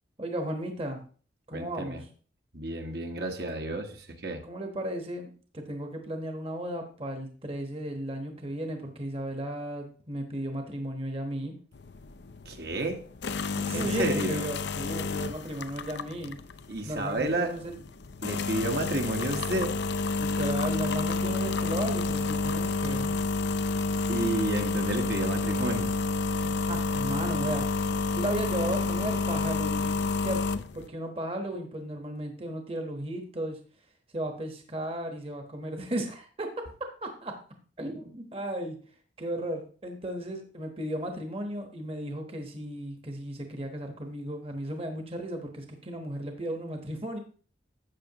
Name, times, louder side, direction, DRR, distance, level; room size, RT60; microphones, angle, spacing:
voice 1, 0.2-1.0 1.5-2.0 4.4-11.6 13.6-16.4 16.9-17.8 20.2-23.2 26.4-27.7 28.1-30.4 30.7-33.6 34.1-36.6 37.0-37.4 37.8-38.8 39.2-47.2, right 1 dB, 30° right, 4 dB, 1.2 m, -35 dB
voice 2, 1.5-2.0 2.5-4.4 12.4-13.0 13.7-14.4 16.7-17.6 18.2-19.8 24.1-25.9, right 2 dB, 55° right, 3 dB, 1.4 m, -31 dB
sound 1, 11.7-30.9, left 4 dB, 70° left, 0.6 m, -30 dB
13.0 x 8.4 x 3.0 m, 0.41 s
head